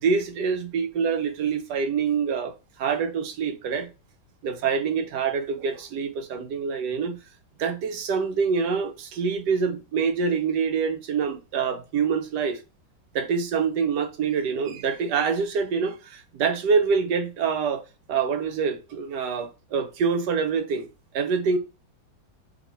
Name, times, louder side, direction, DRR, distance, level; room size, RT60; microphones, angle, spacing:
voice 1, 0.0-2.5 2.8-3.9 4.4-7.2 7.6-12.6 13.1-17.8 18.1-20.9 21.1-21.6, right 5 dB, 70° right, 1.1 m, -25 dB
3.2 x 2.9 x 4.2 m
omnidirectional pair, 2.1 m